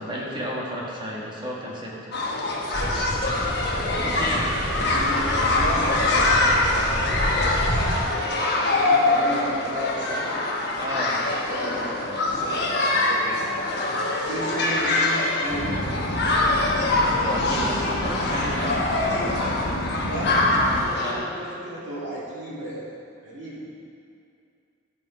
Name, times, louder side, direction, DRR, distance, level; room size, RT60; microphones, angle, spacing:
voice 1, 0.0-2.1 4.0-4.5 10.8-11.2 16.9-18.9 20.9-21.2, equal, 20° right, -4 dB, 1.5 m, -32 dB
sound 1, 2.1-21.1, left 2 dB, 50° left, 1.1 m, -24 dB
sound 2, 2.7-8.0, equal, 25° left, 1.7 m, -29 dB
voice 2, 3.2-3.6 4.8-7.2 8.1-10.3 10.9-13.6 14.1-15.7 19.9-20.4 20.7-22.9 23.2-23.6, equal, 60° right, -8 dB, 2.6 m, -34 dB
sound 3, 15.5-20.8, left 1 dB, 85° left, 1.3 m, -29 dB
13.5 x 5.4 x 4.8 m, 2.5 s
head